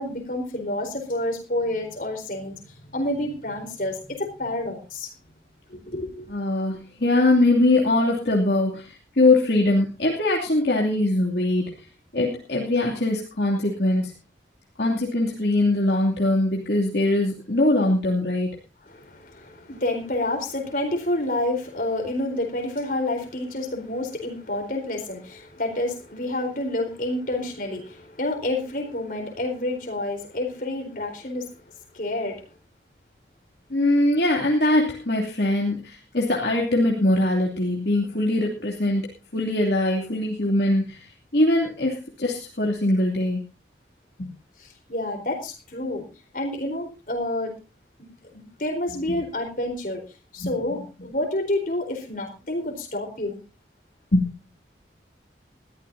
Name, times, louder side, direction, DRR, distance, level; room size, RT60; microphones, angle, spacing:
voice 1, 0.0-2.6 2.9-5.1 5.7-6.3 18.9-31.5 31.9-32.4 44.6-46.1 46.3-47.5 48.3-50.0 50.3-53.4, left 1 dB, 50° left, 3 dB, 4.3 m, -29 dB
voice 2, 6.3-11.7 12.1-14.1 14.8-18.5 33.7-39.0 39.3-43.4 44.2-44.3 50.4-50.5 54.1-54.2, left 2 dB, 65° left, -3 dB, 2.8 m, -22 dB
21.0 x 14.0 x 2.8 m, 0.31 s
head